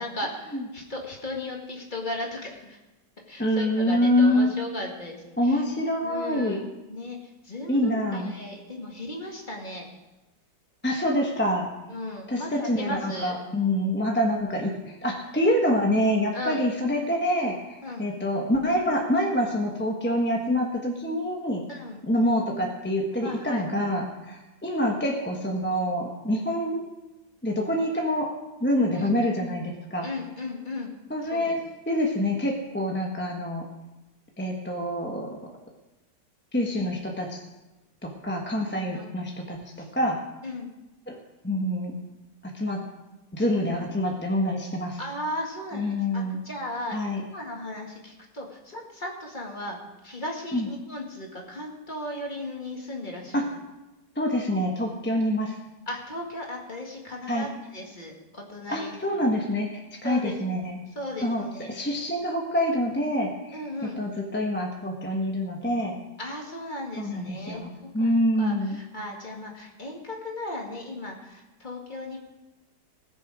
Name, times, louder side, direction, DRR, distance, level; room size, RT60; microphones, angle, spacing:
voice 1, 0.0-2.8 3.3-5.6 6.0-9.9 11.9-13.3 16.3-16.6 17.8-18.1 21.7-22.0 23.2-23.6 28.9-29.1 30.0-30.9 31.2-31.5 38.9-39.1 39.8-39.9 40.4-40.7 45.0-53.5 55.9-59.1 60.0-60.4 61.0-61.8 63.5-64.0 66.2-72.2, left 1 dB, 25° left, 0 dB, 2.1 m, -36 dB
voice 2, 3.4-4.5 5.4-6.6 7.7-8.3 10.8-11.7 12.3-21.6 22.0-26.8 27.4-28.3 28.6-30.1 31.1-31.6 31.9-33.6 34.4-35.5 36.5-37.4 38.0-39.6 39.9-40.2 41.1-41.2 41.4-41.9 42.4-42.8 43.3-45.0 45.7-46.4 46.9-47.2 50.5-50.7 53.3-53.5 54.2-55.5 57.3-57.5 58.7-60.8 61.2-65.9 67.0-68.8, left 1 dB, 10° left, 0 dB, 1.0 m, -26 dB
19.5 x 7.0 x 4.9 m, 1.1 s
omnidirectional pair, 1.9 m